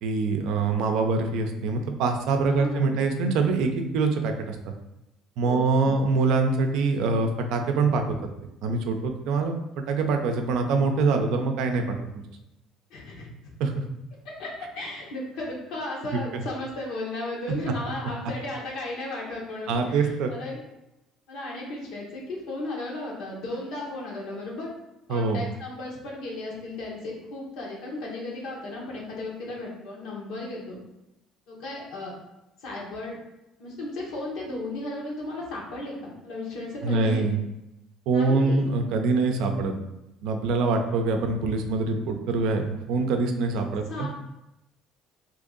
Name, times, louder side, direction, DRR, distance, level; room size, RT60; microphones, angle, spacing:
voice 1, 0.0-4.6 5.4-8.0 8.6-12.0 13.6-13.7 16.1-16.4 17.6-17.7 19.7-20.3 25.1-25.4 36.8-37.4 38.1-39.8 40.2-44.1, right 3 dB, 75° right, 4 dB, 0.5 m, -24 dB
voice 2, 2.5-3.0 5.4-6.0 12.9-13.3 14.2-20.6 21.3-24.7 25.1-30.8 31.5-32.1 32.6-33.2 33.6-37.3 38.1-38.7 43.9-44.1, left 2 dB, 75° left, -3 dB, 1.1 m, -35 dB
2.8 x 2.6 x 3.8 m, 0.91 s
supercardioid pair, 85°, 0 cm